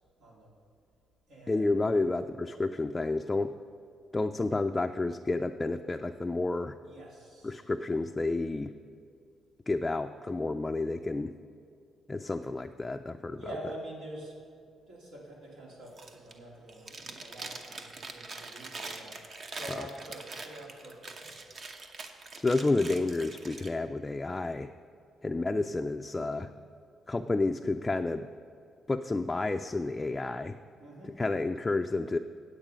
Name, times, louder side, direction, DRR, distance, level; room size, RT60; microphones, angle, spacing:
voice 1, 0.2-0.5 1.3-2.0 6.8-7.7 13.3-14.4 14.9-19.2 19.6-21.4 22.7-22.8 25.4-25.7 30.8-31.2, right 1 dB, 85° right, -4 dB, 2.6 m, -46 dB
voice 2, 1.5-3.6 4.1-6.8 7.4-8.7 9.7-11.3 12.1-13.4 19.8-19.9 22.4-24.7 25.2-26.5 27.1-28.3 28.9-30.6 31.1-32.2, left 2 dB, 20° left, 6 dB, 0.3 m, -30 dB
Chewing mastication, 15.9-16.4 16.7-23.7, right 3 dB, 50° right, 0.9 m, -43 dB
8.9 x 8.2 x 5.1 m, 2.4 s
cardioid pair, 90°, 0 cm